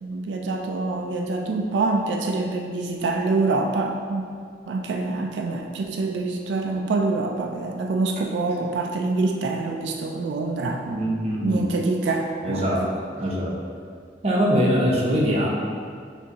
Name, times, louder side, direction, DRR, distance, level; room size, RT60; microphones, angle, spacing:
voice 1, 0.0-4.3 4.7-11.0 11.4-12.9, right 3 dB, 90° right, 2 dB, 0.3 m, -26 dB
voice 2, 10.9-11.6 12.4-12.8 13.2-13.5 14.2-15.5, equal, 35° right, -4 dB, 0.7 m, -22 dB
6.2 x 2.7 x 2.8 m, 2.1 s
head